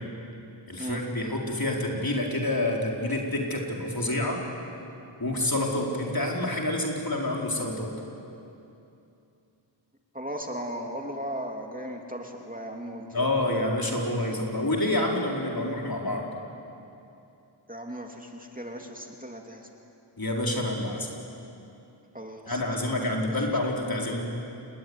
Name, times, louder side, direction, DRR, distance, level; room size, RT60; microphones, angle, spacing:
voice 1, 0.7-4.4 5.2-7.9 13.1-16.3 20.2-21.1 22.5-24.2, left 1 dB, 50° left, -1 dB, 4.6 m, -28 dB
voice 2, 10.1-13.3 17.7-19.7 22.1-23.0, equal, 20° right, 2 dB, 2.9 m, -37 dB
29.5 x 20.5 x 9.8 m, 2.8 s
wide cardioid pair, 50°, 46 cm